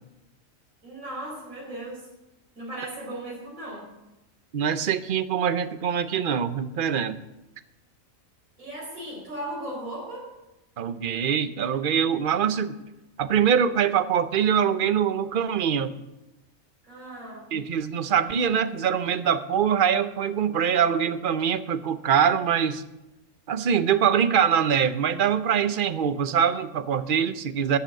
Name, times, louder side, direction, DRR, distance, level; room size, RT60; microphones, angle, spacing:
voice 1, 0.8-2.1 2.5-3.9 8.6-10.3 16.9-17.5, right 1 dB, 80° right, -5 dB, 4.9 m, -37 dB
voice 2, 4.5-7.2 10.8-12.8 13.2-15.9 17.5-22.8 23.5-27.8, right 8 dB, 50° right, 11 dB, 0.8 m, -23 dB
13.5 x 7.9 x 7.6 m, 0.96 s
omnidirectional pair, 1.4 m